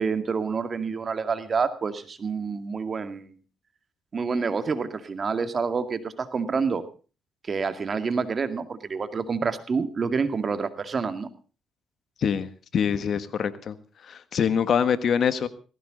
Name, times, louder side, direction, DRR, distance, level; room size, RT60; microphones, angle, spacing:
voice 1, 0.0-3.3 4.1-6.8 7.4-11.3, right 5 dB, 40° right, 10 dB, 2.1 m, -28 dB
voice 2, 12.2-13.8 14.0-15.5, left 7 dB, 60° left, 13 dB, 1.5 m, -25 dB
18.5 x 16.0 x 3.8 m, 0.36 s
cardioid pair, 90°, 0 cm